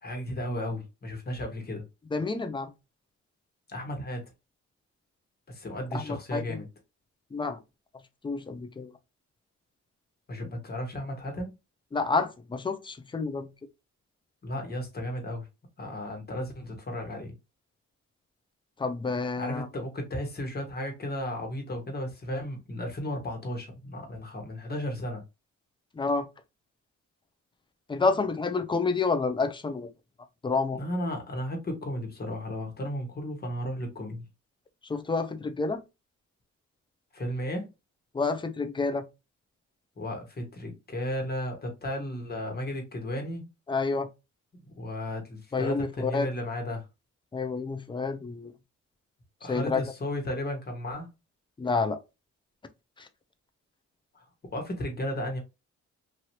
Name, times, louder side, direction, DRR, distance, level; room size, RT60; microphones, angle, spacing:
voice 1, 0.0-1.8 3.7-4.2 5.5-6.7 10.3-11.5 14.4-15.5 15.8-17.3 19.3-25.2 30.7-34.2 37.1-37.7 40.0-43.5 44.6-46.8 49.4-51.1 54.1-55.4, left 1 dB, 30° left, 1.4 m, -34 dB
voice 2, 2.1-2.7 5.9-6.6 7.3-7.6 8.2-8.9 11.9-13.5 18.8-19.7 26.0-26.3 27.9-29.9 30.4-30.8 34.9-35.8 38.1-39.0 43.7-44.1 45.5-46.3 47.3-48.5 49.5-49.9 51.6-52.0, left 4 dB, 15° left, 0.5 m, -29 dB
2.8 x 2.7 x 3.0 m
cardioid pair, 90°, 30 cm